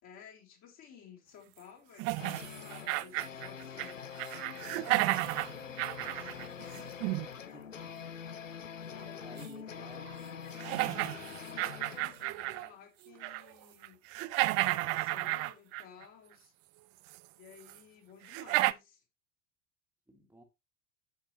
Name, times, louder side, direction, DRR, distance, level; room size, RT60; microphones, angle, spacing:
voice 1, 0.0-4.3 4.7-7.0 8.8-14.0 14.5-16.5 17.4-19.0, left 8 dB, 45° left, 3.7 m, -55 dB
sound 1, 2.0-3.9 4.2-7.3 9.4-9.5 10.1-10.2 10.6-12.7 13.1-13.5 13.8-16.0 17.1-17.2 17.7-17.8 18.3-18.7, right 20 dB, 40° right, 0.5 m, -32 dB
sound 2, 2.2-12.2, left 7 dB, 85° left, 0.7 m, -45 dB
voice 2, 7.4-8.0 9.0-10.1 12.7-12.8 20.1-20.4, right 2 dB, 5° right, 1.8 m, -55 dB
10.0 x 7.2 x 3.0 m
figure-of-eight pair, 70°, 38 cm